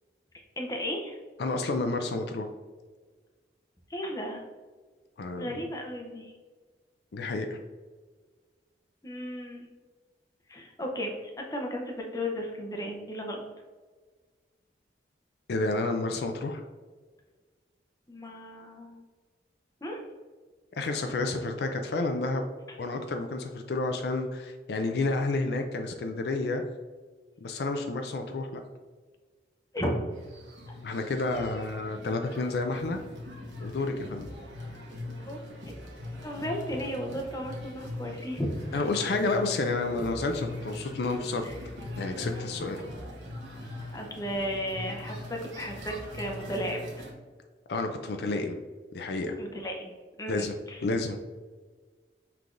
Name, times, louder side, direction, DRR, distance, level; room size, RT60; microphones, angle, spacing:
voice 1, 0.6-1.2 3.9-4.4 5.4-6.3 9.0-9.7 10.5-13.4 18.1-19.0 19.8-20.0 29.7-30.0 35.2-35.7 36.2-38.8 41.4-41.5 43.9-46.8 49.4-49.9 50.2-50.8, equal, 20° left, 1 dB, 0.6 m, -34 dB
voice 2, 1.4-2.5 5.2-5.6 7.1-7.6 15.5-16.6 20.8-22.4 22.8-26.6 27.4-28.6 30.8-33.0 33.6-34.3 38.7-41.5 42.0-42.8 47.7-48.6 48.9-49.4 50.3-50.5 50.8-51.2, left 3 dB, 65° left, 5 dB, 0.4 m, -30 dB
sound 1, 30.1-47.1, left 1 dB, 90° right, 1.1 m, -41 dB
5.8 x 3.3 x 2.5 m, 1.4 s
head